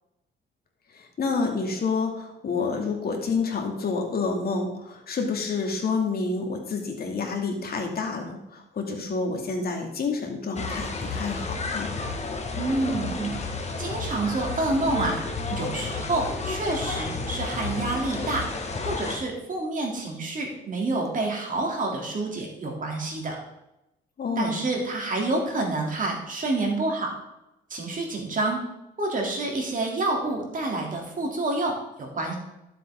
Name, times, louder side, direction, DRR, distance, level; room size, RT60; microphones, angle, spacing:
voice 1, 0.9-11.9 24.2-24.6, left 4 dB, 50° left, 2 dB, 2.7 m, -28 dB
sound 1, 10.6-19.2, left 3 dB, 35° left, 1.8 m, -31 dB
voice 2, 12.5-13.3 13.8-15.2 15.5-18.5 18.8-23.4 24.4-27.2 27.7-28.6 29.0-32.4, right 2 dB, 40° right, 0 dB, 3.4 m, -28 dB
12.5 x 7.7 x 3.9 m, 0.90 s
cardioid pair, 90°, 20 cm